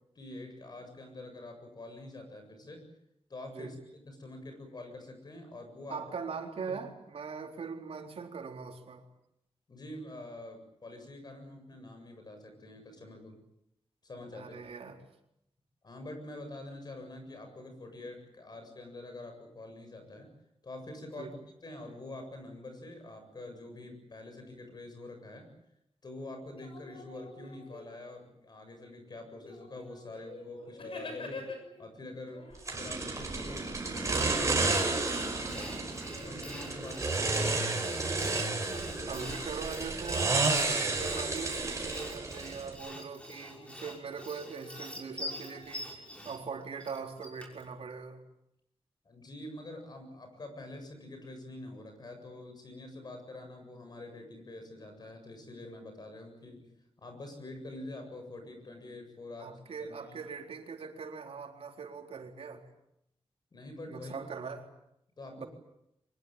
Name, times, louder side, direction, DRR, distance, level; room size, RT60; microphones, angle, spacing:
voice 1, 0.1-2.8 3.3-6.0 6.7-6.8 9.7-13.4 14.0-14.6 14.9-15.0 15.8-20.3 20.6-25.5 26.0-31.4 31.8-39.3 49.0-56.7 57.0-59.5 59.8-60.2 63.5-64.1 65.2-65.5, left 2 dB, 45° left, 5 dB, 7.6 m, -46 dB
voice 2, 5.9-9.0 14.3-15.0 21.1-21.3 39.1-48.2 59.4-62.7 63.9-64.7 65.4-65.5, right 5 dB, 80° right, 3 dB, 4.1 m, -41 dB
sound 1, 26.4-28.2 28.9-29.0 29.4-31.9 32.3-37.5 37.8-40.2 43.3-45.6, left 3 dB, 65° left, 7.1 m, -48 dB
sound 2, 32.7-42.8, right 3 dB, 30° right, 5.5 m, -31 dB
Sawing, 34.1-47.7, left 1 dB, 10° left, 6.2 m, -46 dB
24.5 x 21.0 x 9.0 m, 0.80 s
wide cardioid pair, 145°, 10 cm